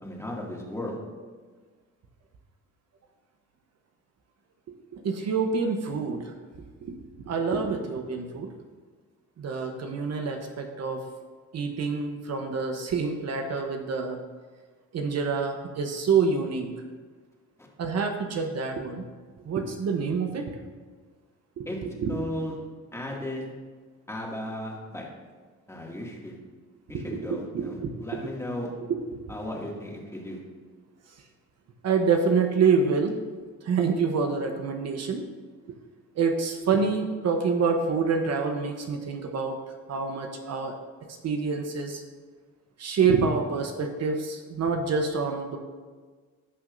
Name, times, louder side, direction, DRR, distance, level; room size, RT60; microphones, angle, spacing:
voice 1, 0.0-1.0 17.6-17.7 21.7-21.8 22.1-22.5 22.9-23.4 24.1-25.1 25.7-26.3 26.9-28.7 29.3-30.4, left 1 dB, 10° left, -3 dB, 2.3 m, -35 dB
voice 2, 4.7-6.3 6.8-7.0 7.3-8.5 9.4-11.0 11.5-14.2 14.9-16.7 17.8-19.0 19.4-20.6 21.6-22.2 26.9-28.2 28.9-29.2 31.8-33.2 33.6-35.2 36.2-39.6 39.9-40.8 41.2-42.0 42.8-45.6, right 5 dB, 60° right, 4 dB, 1.0 m, -27 dB
17.0 x 5.9 x 2.7 m, 1.5 s
cardioid pair, 90°, 30 cm